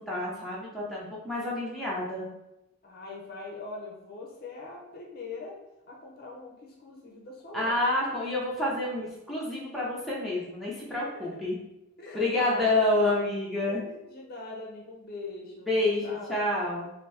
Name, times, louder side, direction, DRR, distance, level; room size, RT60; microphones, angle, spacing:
voice 1, 0.1-2.3 7.5-11.6 12.1-13.8 15.7-16.9, left 2 dB, ahead, -7 dB, 0.6 m, -28 dB
voice 2, 2.8-5.5 5.9-7.8 12.0-13.1 13.6-16.5, left 3 dB, 45° left, -1 dB, 0.6 m, -42 dB
2.9 x 2.6 x 3.2 m, 0.93 s
head